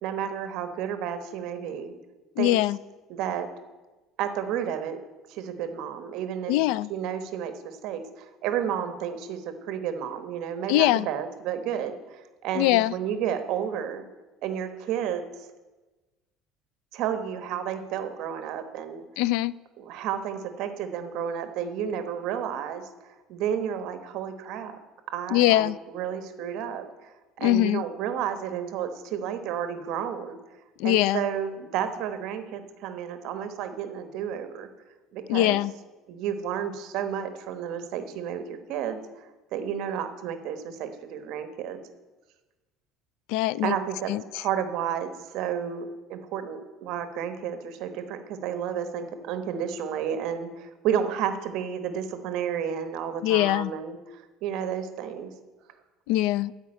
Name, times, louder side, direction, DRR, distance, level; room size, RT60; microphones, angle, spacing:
voice 1, 0.0-1.9 2.4-2.6 3.1-3.5 4.2-5.0 5.3-6.5 6.9-14.0 14.4-15.3 16.9-19.0 19.8-22.9 23.3-24.8 25.1-27.1 27.4-30.4 30.8-34.7 35.1-35.6 36.1-39.0 39.5-41.8 43.6-55.3, right 8 dB, 60° right, 9 dB, 1.1 m, -31 dB
voice 2, 2.4-2.8 6.5-6.9 10.7-11.1 12.6-12.9 19.2-19.5 25.3-25.8 27.4-27.8 30.8-31.2 35.3-35.7 43.3-43.8 44.1-44.2 53.2-53.7 56.1-56.5, left 16 dB, 75° left, 22 dB, 0.3 m, -22 dB
13.0 x 5.2 x 8.8 m, 1.2 s
cardioid pair, 160°, 0 cm